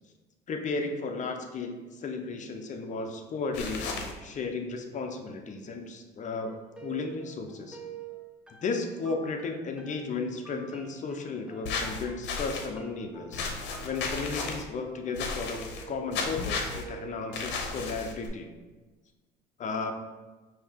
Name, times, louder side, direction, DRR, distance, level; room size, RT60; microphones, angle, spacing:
voice 1, 0.5-6.5 6.8-7.8 8.6-13.5 13.8-15.6 15.9-18.5 19.6-19.9, left 4 dB, 40° left, 4 dB, 0.6 m, -34 dB
sound 1, 3.5-4.1 11.6-12.7 13.3-14.6 15.2-15.8 16.1-16.8 17.3-18.3, left 4 dB, 70° left, 0.8 m, -33 dB
sound 2, 6.4-18.0, right 7 dB, 5° right, 0.7 m, -48 dB
5.2 x 2.8 x 3.5 m, 1.3 s
cardioid pair, 100°, 19 cm